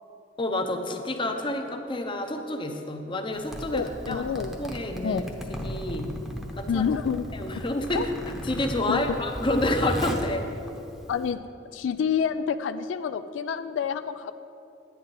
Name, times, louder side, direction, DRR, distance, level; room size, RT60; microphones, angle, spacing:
voice 1, 0.4-4.2 4.6-5.2 5.6-6.1 6.6-6.9 7.3-8.1 8.4-10.5, left 1 dB, 25° left, 5 dB, 0.7 m, -29 dB
Zipper (clothing), 3.3-11.3, equal, ahead, 0.8 m, -36 dB
voice 2, 3.7-4.5 5.0-5.2 6.7-7.3 7.6-7.7 7.9-8.1 8.9-9.2 11.1-11.4 11.7-14.3, left 7 dB, 85° left, 10 dB, 0.3 m, -28 dB
10.5 x 9.3 x 4.1 m, 2.8 s
head